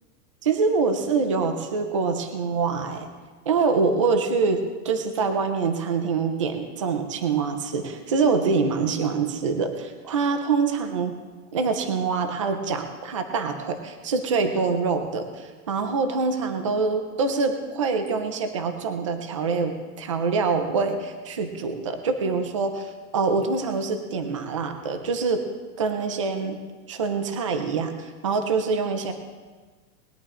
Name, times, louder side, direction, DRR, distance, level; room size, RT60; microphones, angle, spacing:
voice 1, 0.4-3.1 3.5-11.1 11.5-25.4 25.8-26.6 26.9-29.1, right 4 dB, 25° right, 7 dB, 0.4 m, -25 dB
20.0 x 10.5 x 3.7 m, 1.4 s
supercardioid pair, 180°, 46 cm